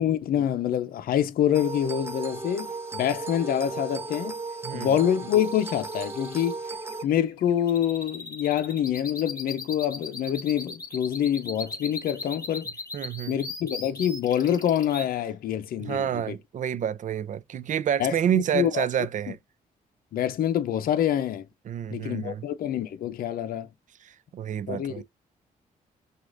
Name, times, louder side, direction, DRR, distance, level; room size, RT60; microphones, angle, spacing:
voice 1, 0.0-4.4 4.7-6.6 7.0-12.7 13.3-16.4 18.0-18.9 20.1-21.5 21.9-23.7 24.7-25.0, left 10 dB, 75° left, 0.6 m, -26 dB
sound 1, 1.5-7.0, right 3 dB, 15° right, 1.4 m, -35 dB
voice 2, 4.6-4.9 12.9-13.4 15.8-19.4 21.7-22.4 24.0-25.0, right 9 dB, 55° right, 0.5 m, -29 dB
sound 2, 5.3-15.1, left 3 dB, 25° left, 2.7 m, -38 dB
6.2 x 2.4 x 2.5 m
cardioid pair, 80°, 15 cm